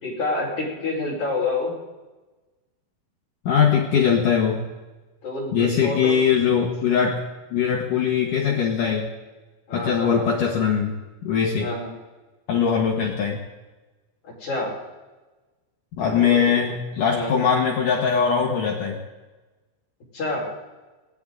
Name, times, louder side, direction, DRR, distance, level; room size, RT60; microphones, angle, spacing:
voice 1, 0.0-1.8 5.2-6.2 9.7-10.3 11.6-11.9 14.2-14.7 16.0-16.6 17.1-17.4 20.1-20.5, left 2 dB, 40° left, -4 dB, 5.9 m, -28 dB
voice 2, 3.5-4.6 5.5-7.2 7.5-9.1 9.7-11.0 11.2-11.7 12.5-13.4 16.0-19.0, left 7 dB, 65° left, 0 dB, 2.1 m, -21 dB
20.5 x 17.0 x 3.9 m, 1.2 s
omnidirectional pair, 5.4 m